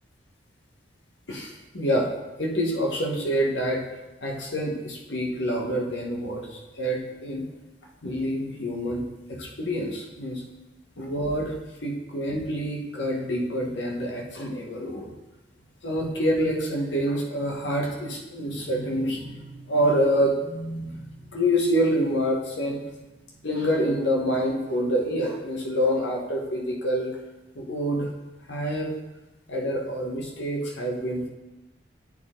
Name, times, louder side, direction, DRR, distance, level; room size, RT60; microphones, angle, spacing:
voice 1, 1.3-2.1 2.4-3.8 4.2-7.4 8.0-10.4 11.0-11.5 11.8-15.1 15.8-21.1 21.3-22.8 23.4-27.1 27.5-28.1 28.5-28.9 29.5-31.2, equal, 80° left, 0 dB, 1.3 m, -27 dB
8.8 x 4.3 x 3.8 m, 1.0 s
head